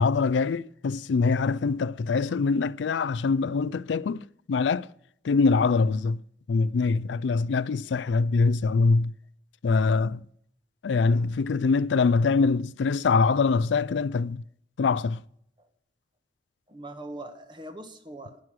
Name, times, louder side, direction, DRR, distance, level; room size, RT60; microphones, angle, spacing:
voice 1, 0.0-4.9 5.2-6.2 6.5-9.1 9.6-10.2 10.8-14.4 14.8-15.2, left 4 dB, 85° left, 0.4 m, -24 dB
voice 2, 16.7-18.4, right 1 dB, 25° right, 1.5 m, -41 dB
19.0 x 6.4 x 6.2 m
head